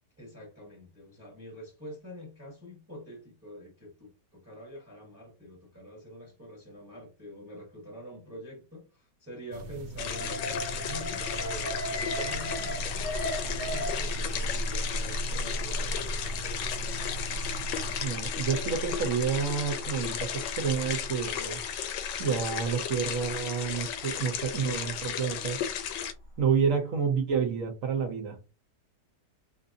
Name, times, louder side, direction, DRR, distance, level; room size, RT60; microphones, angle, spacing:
voice 1, 0.2-16.0, equal, 10° right, 1.0 m, -46 dB
sound 1, 9.5-18.0, right 3 dB, 90° right, 1.3 m, -42 dB
sound 2, 10.0-26.1, left 9 dB, 85° left, 1.3 m, -35 dB
Alarm, 10.1-26.2 26.5-26.6, equal, 55° left, 0.9 m, -37 dB
voice 2, 18.0-21.6 22.2-25.6 26.4-28.4, right 6 dB, 60° right, 1.0 m, -29 dB
3.9 x 2.6 x 2.6 m
omnidirectional pair, 1.9 m